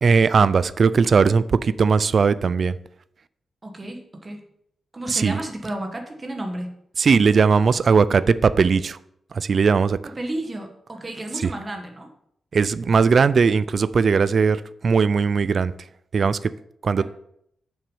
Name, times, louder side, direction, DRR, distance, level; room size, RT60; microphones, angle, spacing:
voice 1, 0.0-2.7 5.1-5.4 7.0-9.0 9.3-10.0 12.5-15.7 16.1-16.4 16.8-17.0, right 5 dB, 40° right, 16 dB, 0.3 m, -18 dB
voice 2, 3.6-4.4 4.9-6.8 10.0-12.1 17.0-17.1, right 1 dB, 20° right, 3 dB, 1.3 m, -32 dB
7.1 x 6.0 x 5.5 m, 0.73 s
wide cardioid pair, 165°, 0 cm